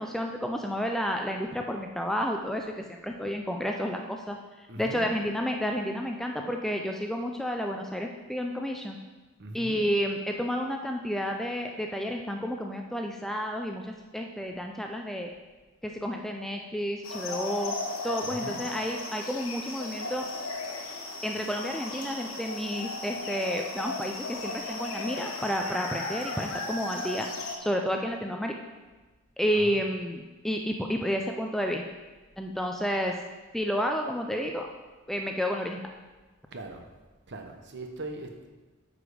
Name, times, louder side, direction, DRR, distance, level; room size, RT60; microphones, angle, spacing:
voice 1, 0.0-4.4 4.8-9.0 9.5-15.3 15.8-17.8 18.0-20.3 21.2-27.3 27.6-28.5 29.4-31.8 32.4-33.1 33.5-34.7 35.1-35.8, equal, ahead, 2 dB, 0.4 m, -31 dB
voice 2, 4.7-5.1 9.4-9.8 18.2-18.6 29.5-29.8 36.5-36.8 37.3-38.5, right 2 dB, 50° right, 4 dB, 0.9 m, -40 dB
sound 1, 17.0-27.6, left 3 dB, 65° left, 1.2 m, -36 dB
8.4 x 5.1 x 5.0 m, 1.2 s
head